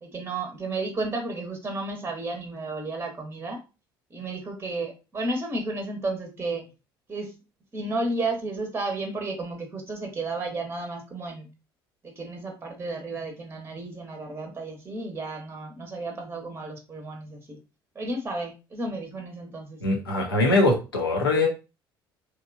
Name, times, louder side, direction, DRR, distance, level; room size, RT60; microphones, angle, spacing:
voice 1, 0.0-3.6 4.1-6.6 7.1-7.3 7.7-11.5 12.0-17.6 18.0-19.8, right 2 dB, 20° right, 4 dB, 0.7 m, -32 dB
voice 2, 19.8-21.5, left 2 dB, 85° left, 0 dB, 0.5 m, -22 dB
2.9 x 2.2 x 2.4 m, 0.30 s
figure-of-eight pair, 55°, 12 cm